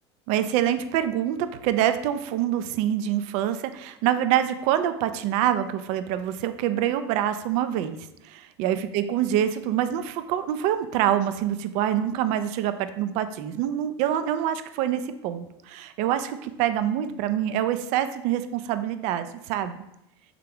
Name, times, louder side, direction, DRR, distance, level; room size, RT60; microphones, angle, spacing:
voice 1, 0.3-8.0 8.2-19.7, right 11 dB, 55° right, 11 dB, 0.4 m, -26 dB
3.6 x 3.2 x 3.4 m, 0.84 s
hypercardioid pair, 85°, 14 cm